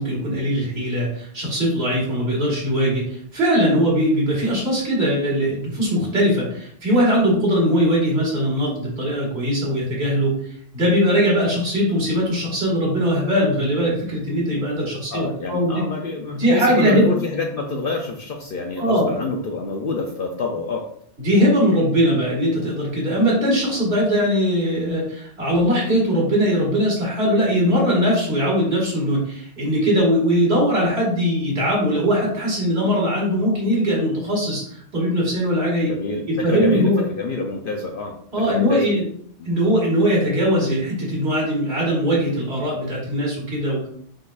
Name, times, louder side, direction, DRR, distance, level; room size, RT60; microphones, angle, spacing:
voice 1, 0.0-10.4 10.7-15.8 16.3-17.1 18.8-19.1 21.2-35.9 36.3-37.0 38.3-39.0 39.5-43.9, equal, 60° right, -3 dB, 2.1 m, -20 dB
voice 2, 15.1-20.9 35.9-39.0, left 3 dB, 60° left, 2 dB, 0.7 m, -27 dB
4.9 x 4.1 x 2.4 m, 0.63 s
omnidirectional pair, 1.2 m